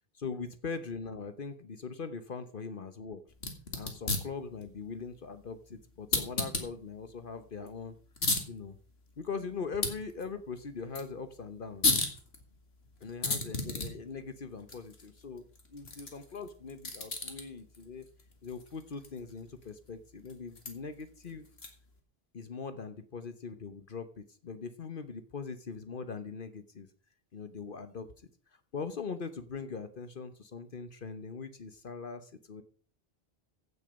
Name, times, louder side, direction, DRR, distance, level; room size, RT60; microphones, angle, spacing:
voice 1, 0.1-3.2 3.7-8.0 8.5-8.8 9.2-11.9 13.0-15.4 15.7-18.1 18.4-21.5 22.3-26.9 27.3-28.1 28.7-32.6, left 5 dB, 55° left, 10 dB, 1.1 m, -41 dB
sound 1, 3.3-22.0, left 3 dB, 75° left, 2.4 m, -37 dB
15.5 x 6.8 x 5.2 m, 0.41 s
omnidirectional pair, 1.1 m